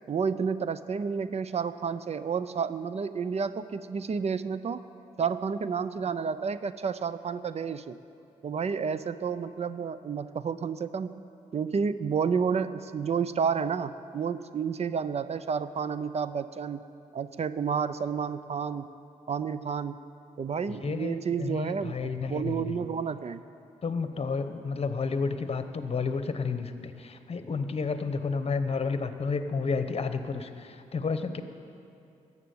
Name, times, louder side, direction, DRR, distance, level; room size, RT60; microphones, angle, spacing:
voice 1, 0.1-4.9 5.2-8.0 8.4-16.8 17.1-18.9 19.3-20.0 20.4-23.4, right 6 dB, 50° right, 14 dB, 0.5 m, -30 dB
voice 2, 20.7-22.8 23.8-31.4, left 4 dB, 45° left, 9 dB, 1.0 m, -31 dB
14.5 x 7.4 x 9.5 m, 2.6 s
cardioid pair, 65°, 14 cm